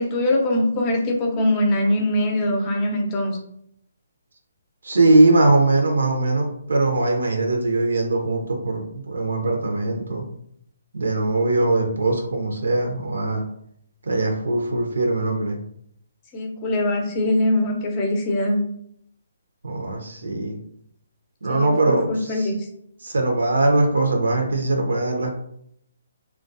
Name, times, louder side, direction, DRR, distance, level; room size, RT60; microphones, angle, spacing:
voice 1, 0.0-3.4 16.3-18.6 21.5-22.7, left 1 dB, 25° left, 1 dB, 0.5 m, -22 dB
voice 2, 4.8-10.2 10.9-13.4 14.1-15.6 19.6-20.6 21.4-22.3 23.0-25.3, right 2 dB, 85° right, 2 dB, 0.5 m, -21 dB
2.2 x 2.2 x 2.5 m, 0.71 s
hypercardioid pair, 155°, 0 cm